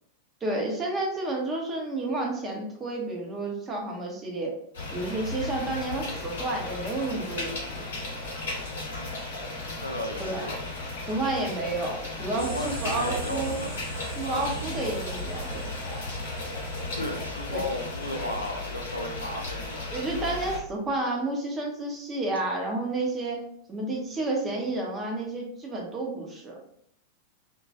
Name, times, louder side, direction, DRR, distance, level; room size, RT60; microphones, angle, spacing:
voice 1, 0.4-4.6 4.9-7.9 10.2-10.4 11.1-13.6 14.2-15.7 17.5-17.7 19.9-26.6, right 2 dB, 20° right, -1 dB, 0.7 m, -31 dB
sound 1, 4.7-20.6, left 2 dB, 60° left, 0.8 m, -35 dB
voice 2, 8.9-9.2 9.8-10.5 12.3-13.7 14.2-14.7 17.0-19.9, left 1 dB, 85° left, 1 dB, 0.4 m, -35 dB
sound 2, 12.4-18.3, right 5 dB, 55° right, 0.9 m, -40 dB
2.2 x 2.2 x 2.7 m, 0.66 s
figure-of-eight pair, 90°, 0 cm